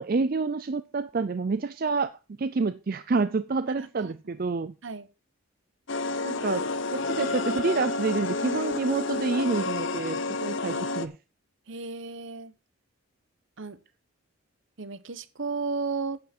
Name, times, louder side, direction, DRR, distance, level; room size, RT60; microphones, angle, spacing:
voice 1, 0.0-2.1 2.4-4.7 6.2-11.2, right 4 dB, 45° right, 0.4 m, -28 dB
voice 2, 3.8-4.1 4.8-5.1 10.7-10.9 11.7-12.5 13.6-13.8 14.8-16.2, right 4 dB, 60° right, 0.9 m, -34 dB
sound 1, 5.9-11.1, left 3 dB, 60° left, 0.8 m, -30 dB
10.5 x 8.4 x 4.3 m
head